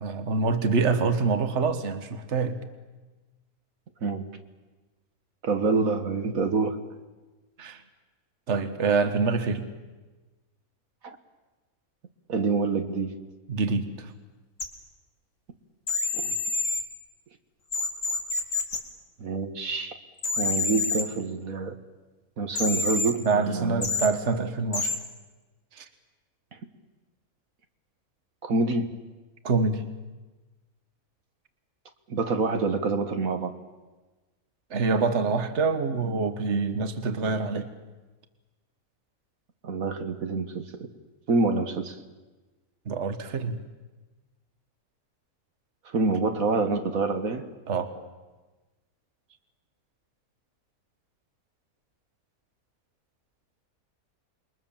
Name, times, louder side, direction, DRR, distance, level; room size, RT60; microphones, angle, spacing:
voice 1, 0.0-2.6 7.6-7.8 8.5-9.7 13.5-14.1 23.2-25.0 25.7-25.9 29.4-29.9 34.7-37.7 42.9-43.6 47.7-47.9, right 4 dB, 50° right, 9 dB, 1.7 m, -26 dB
voice 2, 5.4-6.8 11.0-11.2 12.3-13.2 16.1-16.3 19.2-20.0 20.4-21.8 22.4-23.9 28.4-29.0 32.1-33.5 39.6-40.9 41.3-42.0 45.9-47.4, right 3 dB, 70° right, 7 dB, 1.8 m, -27 dB
sound 1, 14.6-14.7 15.9-16.8 17.7-18.8 20.2-21.0 22.6-23.1 23.8-24.1 24.7-25.0, left 3 dB, 60° left, 2.9 m, -27 dB
28.0 x 22.5 x 7.4 m, 1.2 s
omnidirectional pair, 1.5 m